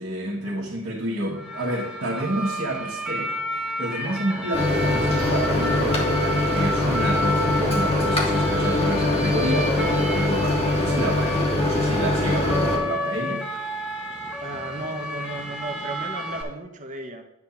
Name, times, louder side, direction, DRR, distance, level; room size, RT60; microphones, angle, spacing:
voice 1, 0.0-6.0 6.5-13.5, right 1 dB, 65° right, -6 dB, 1.6 m, -29 dB
sound 1, 1.3-16.4, equal, 5° right, 1.2 m, -31 dB
Microwave oven, 4.5-12.8, left 2 dB, 25° left, 1.4 m, -23 dB
voice 2, 14.4-17.2, right 2 dB, 35° right, 4 dB, 1.0 m, -34 dB
9.6 x 3.6 x 7.1 m, 0.84 s
head